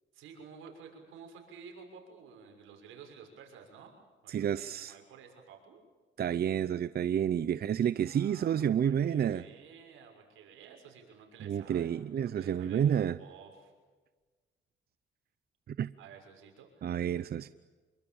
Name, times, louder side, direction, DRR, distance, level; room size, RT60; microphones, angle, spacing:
voice 1, 0.1-3.9 4.2-5.8 8.1-12.8 13.2-13.7 16.0-16.9, right 6 dB, 90° right, 3 dB, 6.4 m, -53 dB
voice 2, 4.3-5.0 6.2-9.4 11.4-13.2 15.7-15.9 16.8-17.5, right 9 dB, 50° right, 14 dB, 0.7 m, -30 dB
27.0 x 23.5 x 7.2 m, 1.3 s
cardioid pair, 90°, 20 cm